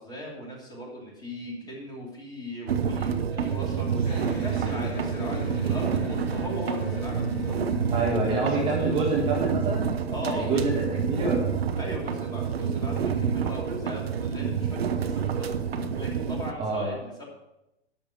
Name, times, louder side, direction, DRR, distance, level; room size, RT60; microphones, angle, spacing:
voice 1, 0.0-9.0 10.1-10.7 11.8-17.2, equal, 10° left, -2 dB, 2.8 m, -38 dB
sound 1, 2.7-16.5, right 7 dB, 60° right, 1.0 m, -28 dB
Electric guitar, 4.0-9.5, left 2 dB, 35° left, 2.2 m, -38 dB
voice 2, 7.9-9.9 10.2-11.5 16.6-17.0, right 3 dB, 15° right, -4 dB, 1.9 m, -27 dB
12.0 x 6.1 x 6.0 m, 0.89 s
figure-of-eight pair, 110°, 34 cm